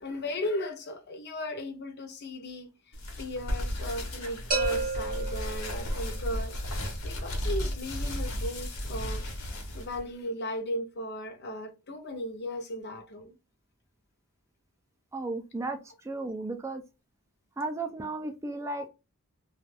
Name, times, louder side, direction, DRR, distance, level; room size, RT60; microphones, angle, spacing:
voice 1, 0.0-2.7 3.2-6.6 7.0-9.2 9.7-13.4, left 1 dB, 50° left, 0.6 m, -36 dB
sound 1, 2.9-10.0, left 1 dB, 70° left, 1.0 m, -34 dB
sound 2, 4.5-6.3, right 4 dB, 40° right, 0.7 m, -32 dB
voice 2, 15.1-16.8 17.6-18.9, right 2 dB, 15° right, 0.3 m, -34 dB
2.4 x 2.3 x 3.2 m
head